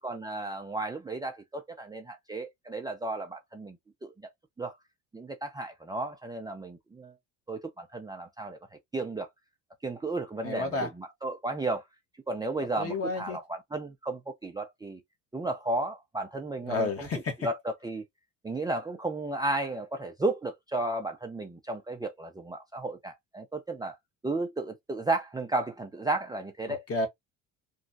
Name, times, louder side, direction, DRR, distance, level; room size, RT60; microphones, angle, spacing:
voice 1, 0.0-3.8 4.0-4.1 4.6-4.8 5.1-7.1 7.5-8.6 8.9-9.3 9.8-11.8 12.3-15.0 15.3-17.1 17.4-18.0 18.4-24.0 24.2-26.8, right 2 dB, 10° right, 0.5 m, -33 dB
voice 2, 10.4-10.9 12.8-13.4 16.6-17.5 26.7-27.1, left 3 dB, 40° left, 1.3 m, -31 dB
3.1 x 2.3 x 2.6 m
supercardioid pair, 95°, 37 cm